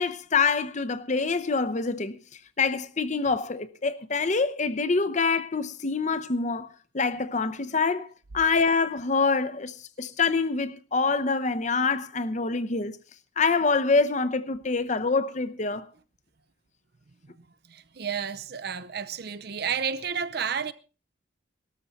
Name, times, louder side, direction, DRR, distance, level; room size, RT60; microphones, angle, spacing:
voice 1, 0.0-2.2 2.6-6.7 6.9-8.1 8.3-13.0 13.4-15.9, left 4 dB, 40° left, 0.8 m, -25 dB
voice 2, 17.3-20.7, right 7 dB, 55° right, 0.7 m, -31 dB
18.5 x 13.5 x 4.1 m
head